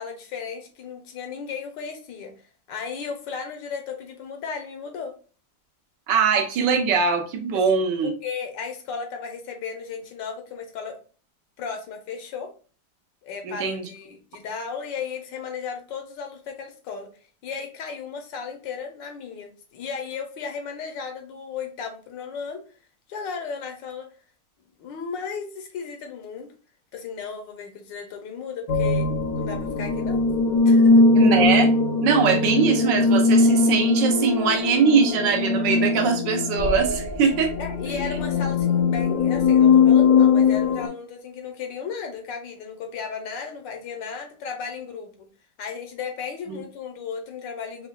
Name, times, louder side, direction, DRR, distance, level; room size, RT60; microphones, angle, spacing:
voice 1, 0.0-2.3 2.7-5.1 7.5-11.0 11.6-12.5 13.2-17.1 17.4-22.6 23.1-24.1 24.8-26.5 26.9-29.1 29.4-30.3 30.6-31.0 37.6-45.3 45.6-47.9, left 6 dB, 80° left, 4 dB, 1.5 m, -35 dB
voice 2, 6.1-8.1 13.4-13.9 31.1-31.7 32.0-37.5 37.9-38.0 46.5-46.6, right 6 dB, 80° right, 3 dB, 1.4 m, -22 dB
sound 1, 28.7-40.9, left 4 dB, 65° left, 1.0 m, -20 dB
5.4 x 2.3 x 2.2 m, 0.38 s
omnidirectional pair, 1.9 m